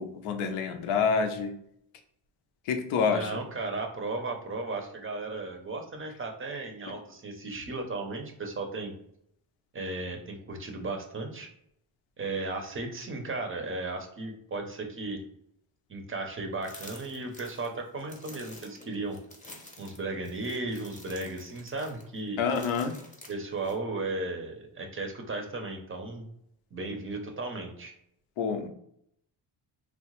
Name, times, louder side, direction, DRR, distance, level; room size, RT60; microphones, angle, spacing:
voice 1, 0.0-1.5 2.7-3.3 22.4-23.0 28.4-28.7, left 5 dB, 85° left, 5 dB, 0.6 m, -27 dB
voice 2, 3.1-8.9 9.7-11.5 12.2-15.2 15.9-19.2 19.8-22.4 23.3-26.2 26.7-27.9, right 2 dB, 30° right, 4 dB, 0.5 m, -35 dB
sound 1, 16.6-23.7, left 2 dB, 15° left, 0.6 m, -49 dB
2.8 x 2.1 x 2.9 m, 0.73 s
cardioid pair, 95°, 48 cm